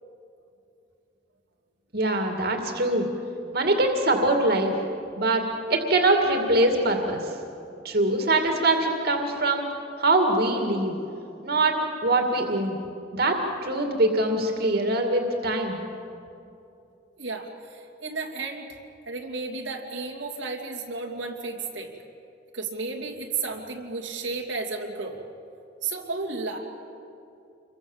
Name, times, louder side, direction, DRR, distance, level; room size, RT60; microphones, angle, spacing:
voice 1, 1.9-3.1 3.5-4.7 5.2-5.4 5.7-7.2 7.8-9.7 10.0-10.9 11.4-12.8 13.1-15.8, right 2 dB, 55° right, 3 dB, 2.5 m, -23 dB
voice 2, 17.2-18.8 19.1-21.9 22.5-25.2 25.8-26.6, right 4 dB, 85° right, 0 dB, 2.7 m, -33 dB
27.5 x 23.0 x 7.3 m, 2.7 s
head